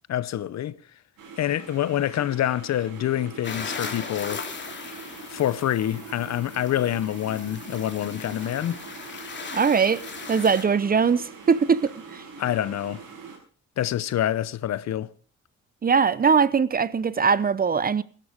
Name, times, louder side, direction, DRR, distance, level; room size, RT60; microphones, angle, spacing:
voice 1, 0.1-0.8 1.4-4.4 5.3-8.8 12.4-13.0 13.8-15.1, left 12 dB, 65° left, 0.8 m, -26 dB
sound 1, 1.2-13.4, right 5 dB, 85° right, 6.1 m, -43 dB
sound 2, 3.4-10.6, left 5 dB, 35° left, 2.8 m, -38 dB
voice 2, 9.5-10.0 10.3-12.2 15.8-18.0, right 6 dB, 30° right, 0.7 m, -21 dB
17.0 x 12.0 x 5.1 m
cardioid pair, 90°, 30 cm